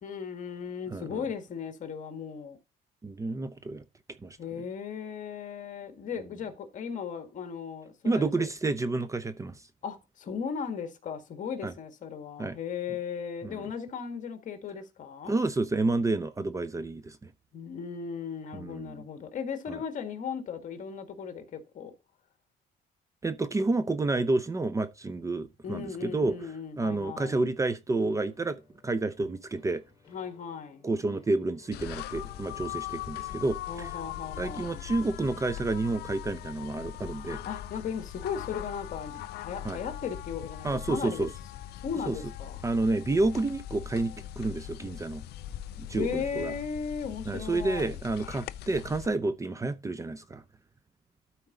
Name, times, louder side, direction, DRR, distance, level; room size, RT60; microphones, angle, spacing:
voice 1, 0.0-2.6 4.4-8.5 9.8-15.4 17.5-21.9 25.6-27.5 30.1-30.9 33.7-34.9 37.0-41.3 41.8-42.6 45.8-48.0, left 6 dB, 50° left, 1.8 m, -37 dB
voice 2, 0.9-1.2 3.0-3.8 4.2-4.4 8.0-9.6 11.6-11.7 12.4-12.6 13.4-13.7 15.3-17.3 18.5-18.9 19.7-19.8 23.2-26.5 26.8-29.8 30.8-33.9 34.4-37.4 39.6-39.8 40.6-41.3 42.1-42.2 42.6-45.2 45.8-46.5 47.3-50.4, right 2 dB, 20° right, 0.6 m, -30 dB
sound 1, 28.0-36.2, left 6 dB, 30° left, 3.8 m, -59 dB
sound 2, 31.7-49.1, left 12 dB, 70° left, 0.5 m, -41 dB
12.5 x 4.5 x 3.9 m
cardioid pair, 110°, 17 cm